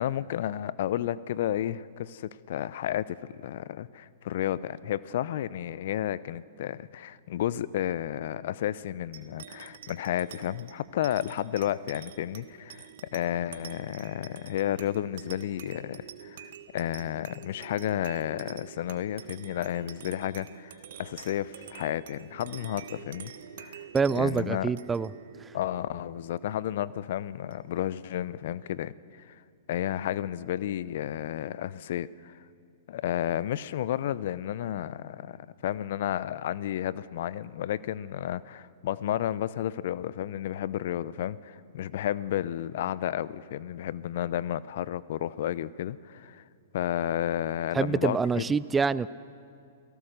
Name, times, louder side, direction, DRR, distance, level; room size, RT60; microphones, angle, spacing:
voice 1, 0.0-23.3 23.6-23.8 24.1-24.7 25.5-28.9 29.3-29.4 29.7-32.4 32.9-46.4 46.7-48.4, left 11 dB, 60° left, 18 dB, 0.6 m, -32 dB
sound 1, 9.1-28.0, right 9 dB, 60° right, 1.4 m, -48 dB
voice 2, 23.9-25.1 25.4-25.5 47.7-49.1, right 5 dB, 15° right, 18 dB, 0.4 m, -26 dB
29.0 x 18.0 x 6.6 m, 2.4 s
figure-of-eight pair, 110°, 0 cm